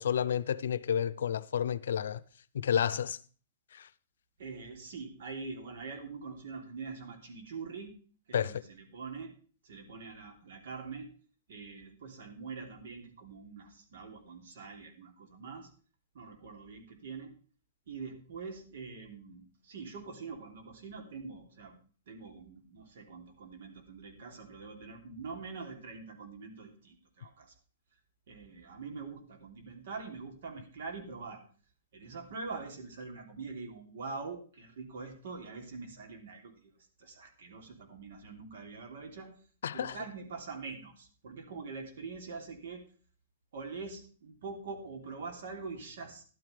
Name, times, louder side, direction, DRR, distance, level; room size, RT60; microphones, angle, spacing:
voice 1, 0.0-2.2 2.5-3.2 3.7-3.9 8.3-8.6 39.6-40.0, left 8 dB, 80° left, 0.6 m, -30 dB
voice 2, 4.4-7.9 8.3-9.3 9.6-11.1 11.5-15.7 16.1-17.3 17.9-21.8 22.1-27.5 28.3-31.4 31.9-36.7 37.0-39.4 39.7-42.8 43.5-46.2, right 4 dB, 70° right, 3.1 m, -44 dB
13.0 x 11.5 x 3.4 m
hypercardioid pair, 155°, 0 cm